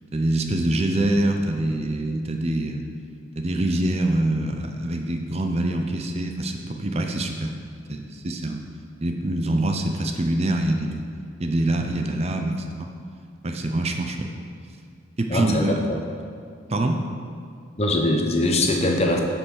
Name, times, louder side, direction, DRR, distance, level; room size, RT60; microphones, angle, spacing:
voice 1, 0.1-2.8 3.4-7.5 7.9-8.6 9.0-11.0 11.4-12.9 13.4-14.3 15.2-15.8 16.7-17.0, right 1 dB, 30° right, 4 dB, 0.6 m, -25 dB
voice 2, 15.3-16.0 17.8-19.2, left 1 dB, 30° left, 2 dB, 1.0 m, -22 dB
8.9 x 5.5 x 6.3 m, 2.3 s
head